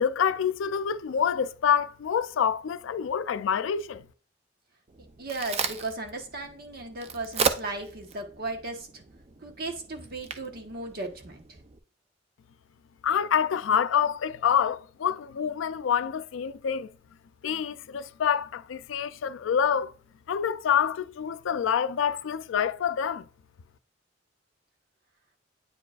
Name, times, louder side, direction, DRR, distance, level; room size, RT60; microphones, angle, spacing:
voice 1, 0.0-4.0 13.0-16.9 17.4-19.9 20.3-23.3, left 8 dB, 90° left, 0.4 m, -27 dB
Crack, 4.9-11.8, right 5 dB, 35° right, 0.5 m, -35 dB
voice 2, 5.2-9.0 9.4-11.6, right 2 dB, 55° right, 1.2 m, -36 dB
8.7 x 4.6 x 2.4 m
head